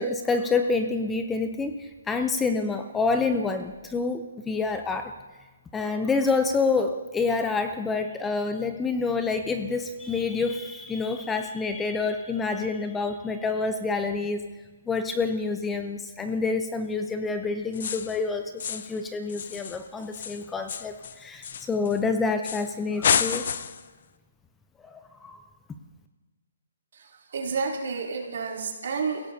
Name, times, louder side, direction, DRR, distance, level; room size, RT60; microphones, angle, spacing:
voice 1, 0.0-5.1 5.7-14.4 14.9-23.5 24.8-25.4, left 4 dB, 10° left, 7 dB, 0.5 m, -28 dB
sound 1, 17.7-18.2 18.6-19.0 19.3-22.0 22.4-22.7 23.0-23.9, left 7 dB, 50° left, 0.6 m, -29 dB
voice 2, 26.9-29.2, right 5 dB, 60° right, -1 dB, 3.1 m, -30 dB
28.5 x 16.5 x 2.7 m, 1.2 s
hypercardioid pair, 160°, 0 cm